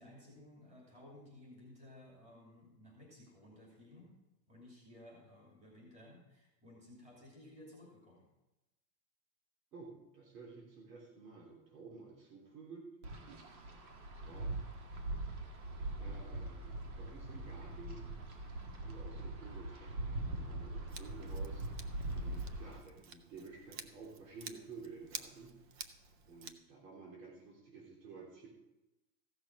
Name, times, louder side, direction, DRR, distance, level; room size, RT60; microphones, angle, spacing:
voice 1, 0.0-4.1 4.5-8.2, left 1 dB, 15° right, -2 dB, 2.7 m, -57 dB
voice 2, 9.7-12.9 14.2-14.5 16.0-18.0 18.8-21.6 22.1-25.6 26.3-28.5, right 4 dB, 80° right, -2 dB, 3.6 m, -52 dB
Wind, 13.0-22.8, right 2 dB, 60° right, 2.1 m, -42 dB
Scissors, 20.9-26.5, right 6 dB, 35° right, 0.4 m, -51 dB
14.5 x 6.2 x 6.2 m, 0.96 s
supercardioid pair, 170°, 48 cm